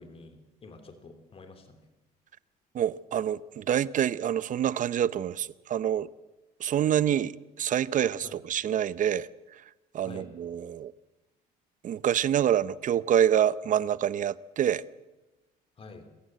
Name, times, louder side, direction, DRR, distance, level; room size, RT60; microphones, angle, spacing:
voice 1, 0.0-1.8 8.2-8.3 10.0-10.3 15.8-16.1, left 3 dB, 35° left, 2.8 m, -48 dB
voice 2, 2.7-6.1 6.6-9.3 9.9-10.9 11.8-14.8, right 10 dB, 50° right, 0.7 m, -26 dB
26.5 x 14.5 x 7.6 m
cardioid pair, 110°, 17 cm